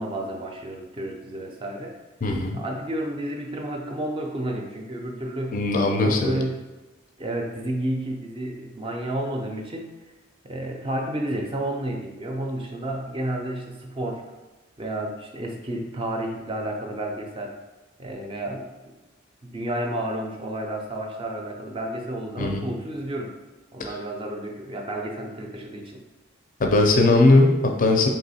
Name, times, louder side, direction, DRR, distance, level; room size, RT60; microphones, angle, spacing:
voice 1, 0.0-2.0 2.5-5.6 6.0-6.7 7.2-9.9 10.4-14.2 14.8-17.5 18.0-18.7 19.4-23.4 23.7-26.0, right 1 dB, 25° right, 1 dB, 0.4 m, -31 dB
voice 2, 2.2-2.6 5.5-6.4 22.4-22.7 23.8-23.9 26.6-28.1, left 2 dB, 40° left, 4 dB, 0.4 m, -19 dB
3.7 x 3.0 x 4.1 m, 1.1 s
head